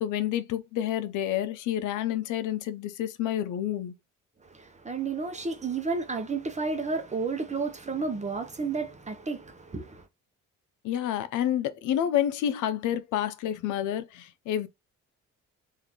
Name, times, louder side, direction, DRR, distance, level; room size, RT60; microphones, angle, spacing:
voice 1, 0.0-3.9 10.8-14.7, left 11 dB, 85° left, 0.6 m, -29 dB
voice 2, 4.4-10.0, right 4 dB, 25° right, 0.8 m, -32 dB
3.7 x 2.7 x 3.0 m
cardioid pair, 90°, 30 cm